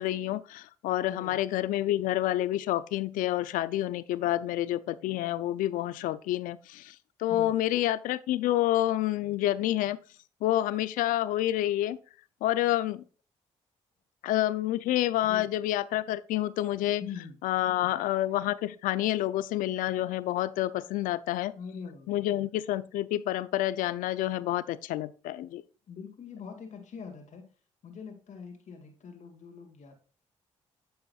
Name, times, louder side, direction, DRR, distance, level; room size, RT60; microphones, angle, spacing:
voice 1, 0.0-10.0 10.4-12.0 12.4-13.0 14.2-17.0 17.4-21.5 22.1-25.6, left 14 dB, 80° left, 0.5 m, -28 dB
voice 2, 1.1-1.4 7.3-7.6 15.2-15.5 17.0-17.4 21.5-22.2 25.9-27.5 27.8-30.0, left 6 dB, 60° left, 2.1 m, -43 dB
9.3 x 6.8 x 2.4 m
supercardioid pair, 55°, 14 cm